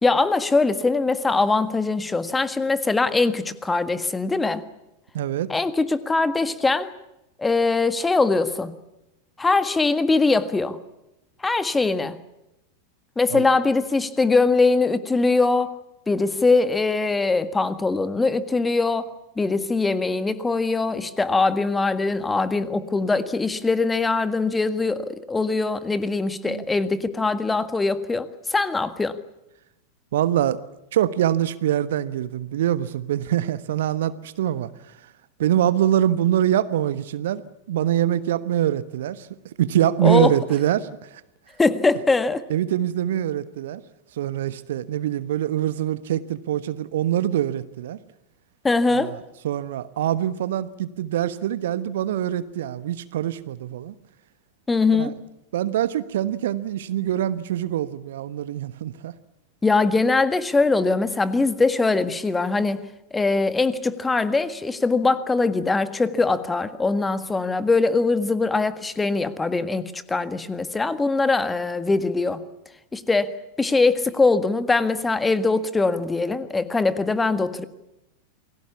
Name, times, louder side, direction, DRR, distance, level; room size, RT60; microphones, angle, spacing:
voice 1, 0.0-4.6 5.5-6.9 7.4-8.7 9.4-10.8 11.4-12.2 13.2-15.8 16.1-29.2 40.0-40.3 41.6-42.4 48.6-49.1 54.7-55.2 59.6-72.4 72.9-73.3 73.6-77.6, left 3 dB, 10° left, 12 dB, 1.7 m, -22 dB
voice 2, 5.1-5.5 13.3-13.5 26.4-26.6 30.1-30.6 30.9-34.7 35.4-37.4 37.7-39.3 39.6-41.2 42.5-43.8 44.1-48.0 48.9-53.9 54.9-55.1 55.5-59.1, right 11 dB, 55° right, 15 dB, 1.2 m, -24 dB
29.0 x 21.0 x 7.1 m, 0.91 s
figure-of-eight pair, 90°, 0 cm